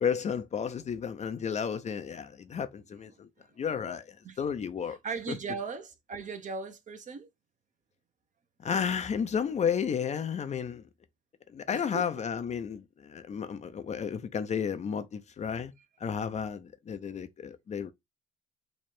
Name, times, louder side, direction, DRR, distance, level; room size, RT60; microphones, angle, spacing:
voice 1, 0.0-3.3 3.6-5.0 8.6-10.8 11.5-15.7 16.0-17.9, left 7 dB, 35° left, 0.6 m, -32 dB
voice 2, 5.0-7.3 11.7-12.3, right 4 dB, 40° right, 0.8 m, -38 dB
3.2 x 2.4 x 4.3 m
supercardioid pair, 85°, 19 cm